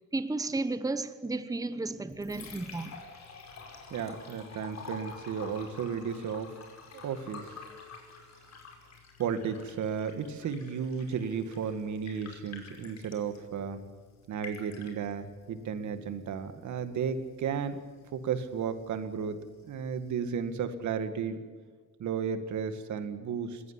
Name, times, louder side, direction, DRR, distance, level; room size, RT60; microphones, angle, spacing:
voice 1, 0.1-3.0, right 2 dB, 10° right, 1.0 m, -33 dB
Liquid, 1.9-20.9, left 4 dB, 60° left, 5.3 m, -50 dB
voice 2, 3.9-6.5 6.9-7.6 9.2-13.8 14.3-17.8 18.1-19.4 19.7-21.4 22.0-23.6, right 7 dB, 70° right, 2.1 m, -34 dB
20.5 x 17.5 x 9.9 m
cardioid pair, 90°, 30 cm